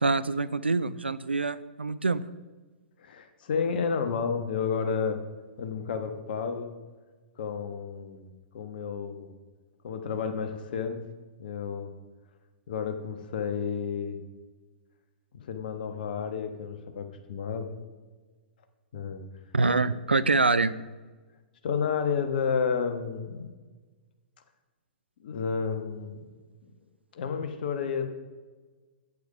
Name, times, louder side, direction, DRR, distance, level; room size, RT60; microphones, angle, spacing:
voice 1, 0.0-2.2 19.5-20.7, right 3 dB, 85° right, 16 dB, 0.5 m, -25 dB
voice 2, 3.0-5.2 5.6-6.7 7.4-9.3 9.8-11.0 11.4-11.9 12.7-14.2 15.3-17.7 18.9-19.2 21.6-23.5 25.2-26.3 27.1-28.1, left 6 dB, 55° left, 7 dB, 1.2 m, -31 dB
8.5 x 8.4 x 4.9 m, 1.3 s
figure-of-eight pair, 110°, 6 cm